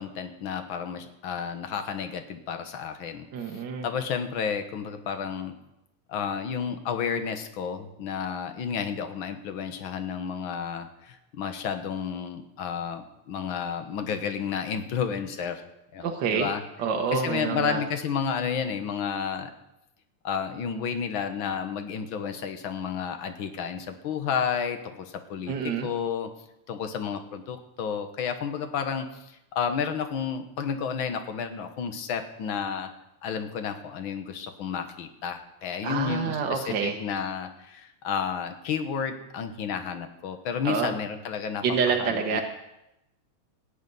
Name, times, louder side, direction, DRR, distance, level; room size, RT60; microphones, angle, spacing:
voice 1, 0.0-3.3 3.5-5.5 6.1-15.6 15.9-16.6 17.1-19.5 20.2-26.3 26.7-32.9 33.2-41.6 42.0-42.4, left 7 dB, 55° left, 8 dB, 1.6 m, -31 dB
voice 2, 3.3-3.9 16.0-16.5 16.8-17.8 25.5-25.9 35.8-37.0 40.6-40.9 41.6-42.4, right 6 dB, 60° right, 3 dB, 1.2 m, -27 dB
17.0 x 6.9 x 9.3 m, 0.89 s
omnidirectional pair, 3.4 m